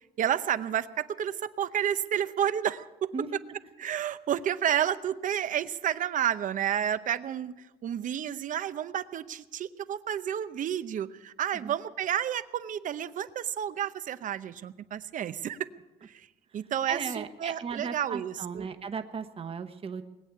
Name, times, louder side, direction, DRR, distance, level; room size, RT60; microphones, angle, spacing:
voice 1, 0.2-3.1 3.8-7.5 7.8-15.6 16.1-16.3 16.5-18.6, right 9 dB, 50° right, 14 dB, 0.8 m, -30 dB
voice 2, 16.9-20.0, right 5 dB, 35° right, 8 dB, 1.2 m, -36 dB
20.5 x 8.4 x 8.3 m, 1.1 s
cardioid pair, 110°, 17 cm